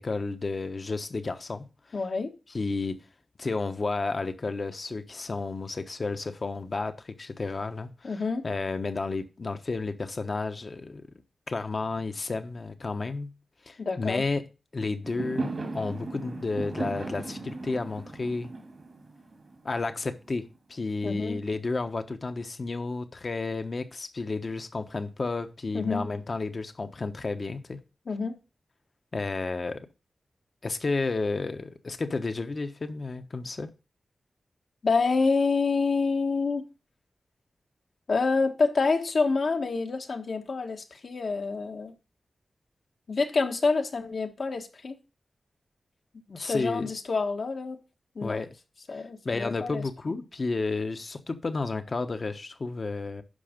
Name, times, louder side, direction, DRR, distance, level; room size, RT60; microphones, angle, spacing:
voice 1, 0.0-1.7 2.5-3.0 3.4-11.1 11.5-13.3 13.7-14.4 14.7-18.5 19.6-20.4 20.7-27.8 29.1-29.9 30.6-33.7 46.3-46.9 48.2-48.5 48.9-53.2, left 3 dB, 50° left, 1.1 m, -32 dB
voice 2, 1.9-2.3 8.0-8.5 13.8-14.2 21.0-21.4 25.7-26.1 28.1-28.4 34.8-36.7 38.1-41.9 43.1-45.0 46.4-47.8 48.1-48.4 48.9-49.8, left 4 dB, 70° left, 1.5 m, -27 dB
Fireworks, 15.0-20.3, right 3 dB, 60° right, 2.6 m, -36 dB
12.0 x 4.9 x 5.1 m
cardioid pair, 60°, 0 cm